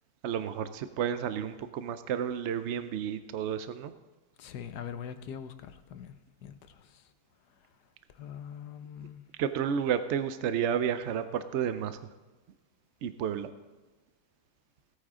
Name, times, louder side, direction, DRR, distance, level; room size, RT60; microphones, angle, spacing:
voice 1, 0.2-3.9 9.4-12.0 13.0-13.5, right 8 dB, 70° right, 11 dB, 0.6 m, -31 dB
voice 2, 4.4-6.1 6.4-6.5 8.2-9.2, left 8 dB, 75° left, 10 dB, 1.3 m, -42 dB
17.0 x 8.9 x 3.7 m, 1.2 s
omnidirectional pair, 1.8 m